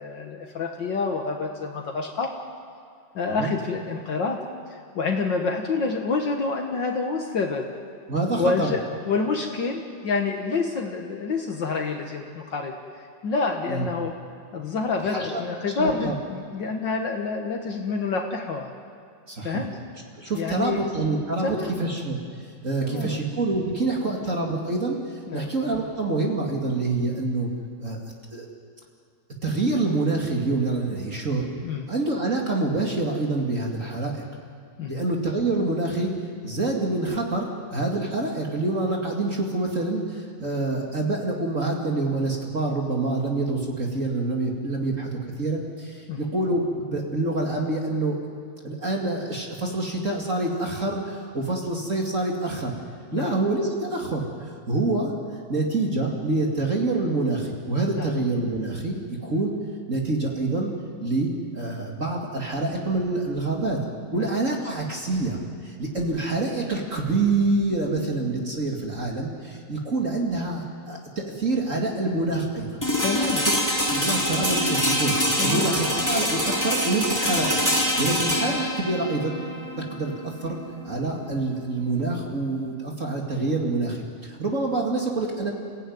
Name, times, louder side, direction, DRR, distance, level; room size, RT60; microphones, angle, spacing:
voice 1, 0.0-2.3 3.1-4.4 4.7-7.7 8.4-14.2 14.5-18.7 19.4-19.8 20.3-20.8 21.4-21.9 22.8-23.2 25.3-25.5 31.6-31.9 34.8-35.0 46.1-46.2 53.1-53.3 58.0-58.1 64.2-64.3 73.0-73.5 75.4-75.7, left 4 dB, 65° left, 2 dB, 2.0 m, -28 dB
voice 2, 8.1-8.7 13.7-13.9 15.0-16.1 19.3-19.7 20.2-27.5 27.8-28.0 28.3-28.5 29.4-31.4 31.9-34.2 34.9-48.2 48.6-52.8 53.1-55.1 55.5-59.5 59.9-60.7 61.0-63.8 64.1-72.8 73.8-79.4 79.8-80.6 80.8-85.5, right 2 dB, 40° right, 0 dB, 2.6 m, -26 dB
sound 1, 72.8-82.7, equal, 10° left, 2.8 m, -25 dB
29.0 x 16.0 x 9.4 m, 2.2 s
omnidirectional pair, 2.2 m